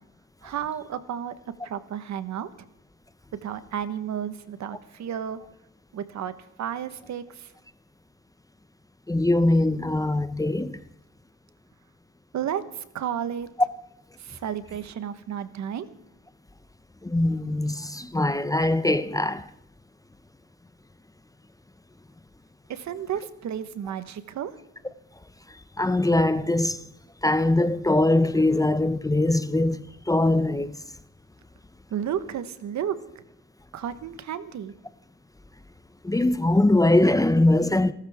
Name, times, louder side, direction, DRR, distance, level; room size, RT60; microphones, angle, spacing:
voice 1, 0.4-1.3 1.6-2.7 3.4-5.4 5.9-6.3 6.6-7.5 12.3-13.5 14.2-15.9 22.7-24.5 31.9-33.0 33.7-34.7, right 9 dB, 65° right, 1.3 m, -32 dB
voice 2, 9.1-10.8 17.0-19.4 25.8-26.8 27.2-30.8 36.0-37.9, left 2 dB, 10° left, 0.7 m, -22 dB
26.5 x 13.0 x 3.6 m
cardioid pair, 90°, 30 cm